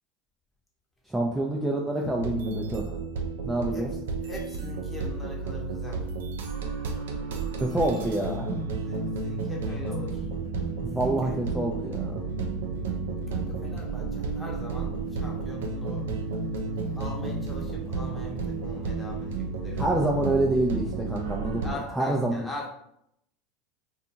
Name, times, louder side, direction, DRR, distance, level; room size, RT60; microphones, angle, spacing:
voice 1, 1.1-2.9 3.4-3.9 7.6-8.6 10.8-12.2 19.7-22.5, right 1 dB, 5° right, -2 dB, 0.4 m, -27 dB
sound 1, 2.2-21.7, right 4 dB, 85° right, 0.4 m, -32 dB
voice 2, 4.2-6.0 7.7-7.9 8.9-10.2 11.0-11.4 13.3-16.1 17.0-19.8 21.6-22.7, left 2 dB, 15° left, -1 dB, 0.8 m, -41 dB
2.6 x 2.3 x 2.7 m, 0.75 s
hypercardioid pair, 95°, 0 cm